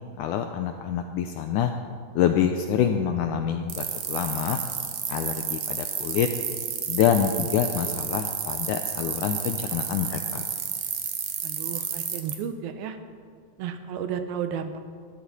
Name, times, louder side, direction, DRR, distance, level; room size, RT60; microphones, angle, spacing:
voice 1, 0.2-1.7 2.2-4.6 5.1-6.3 6.9-10.5, left 9 dB, 85° left, 6 dB, 1.8 m, -26 dB
sound 1, 3.7-12.3, right 9 dB, 65° right, 2.3 m, -31 dB
voice 2, 11.4-13.0 13.6-14.8, right 8 dB, 85° right, 8 dB, 2.8 m, -33 dB
19.0 x 13.5 x 4.2 m, 2.1 s
omnidirectional pair, 4.2 m